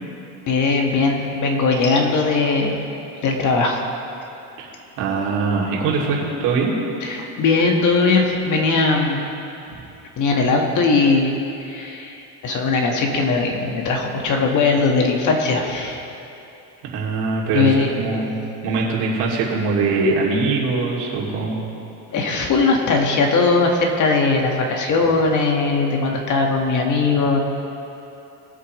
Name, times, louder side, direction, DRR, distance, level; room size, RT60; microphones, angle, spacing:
voice 1, 0.5-2.9 3.2-3.8 7.0-9.2 10.2-16.0 17.5-18.3 18.6-18.8 22.1-27.4, left 3 dB, 45° left, 1 dB, 1.6 m, -19 dB
voice 2, 5.0-6.7 9.7-9.8 16.9-18.4 18.6-21.6, right 4 dB, 65° right, -4 dB, 2.8 m, -22 dB
20.5 x 8.3 x 3.2 m, 2.8 s
cardioid pair, 135°, 42 cm